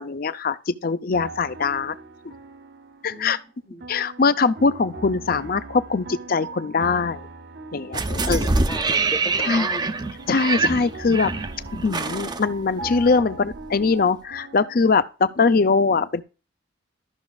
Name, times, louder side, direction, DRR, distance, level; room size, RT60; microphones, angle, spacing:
voice 1, 0.0-1.9 3.0-3.4 3.9-7.2 7.7-8.5 9.4-9.7 10.3-11.3 11.8-16.2, left 4 dB, 50° left, 0.5 m, -22 dB
sound 1, 1.1-3.5 3.8-9.5 9.8-14.9, right 3 dB, 60° right, 0.8 m, -40 dB
voice 2, 3.0-3.8 8.1-9.9, left 1 dB, 15° left, 0.7 m, -37 dB
sound 2, 7.9-13.2 13.5-13.6, right 3 dB, 20° right, 0.5 m, -25 dB
13.5 x 6.0 x 2.4 m
head